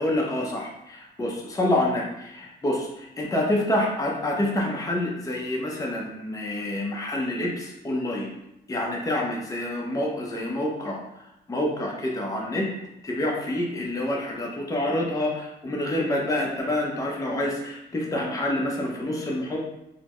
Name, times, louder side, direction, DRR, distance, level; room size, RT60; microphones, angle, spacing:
voice 1, 0.0-8.3 8.7-11.0 11.5-12.7 13.0-19.6, left 1 dB, 15° left, -1 dB, 0.6 m, -27 dB
3.9 x 2.0 x 3.0 m, 0.83 s
cardioid pair, 90°, 20 cm